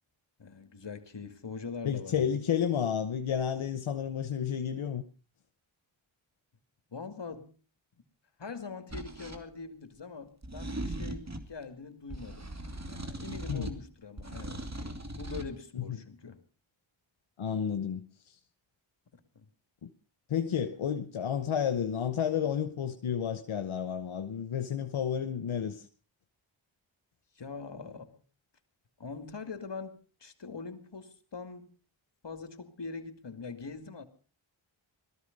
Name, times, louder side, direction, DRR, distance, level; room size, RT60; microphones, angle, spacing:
voice 1, 0.4-2.3 6.9-7.6 8.4-12.5 12.9-16.4 19.3-19.5 27.4-28.2 29.0-31.7 32.2-34.0, left 4 dB, 60° left, 2.4 m, -43 dB
voice 2, 1.8-5.0 13.5-13.7 15.7-15.8 17.4-18.0 19.8-19.9 20.3-25.9, left 8 dB, 90° left, 1.0 m, -31 dB
sound 1, 8.9-9.4 10.4-11.5 12.1-13.8 14.2-15.5, right 1 dB, 35° right, 2.6 m, -39 dB
18.5 x 13.5 x 5.3 m
cardioid pair, 40°, 47 cm